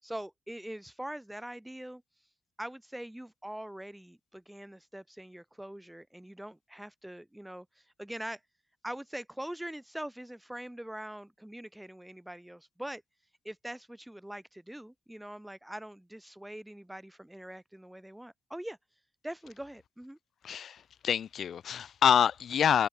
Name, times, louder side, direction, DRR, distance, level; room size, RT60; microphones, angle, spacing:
voice 1, 0.0-2.0 2.6-8.4 8.8-13.0 13.4-18.8 19.2-20.2, right 1 dB, 5° right, 5.3 m, -43 dB
voice 2, 20.4-22.9, left 8 dB, 65° left, 0.6 m, -26 dB
supercardioid pair, 65°, 0 cm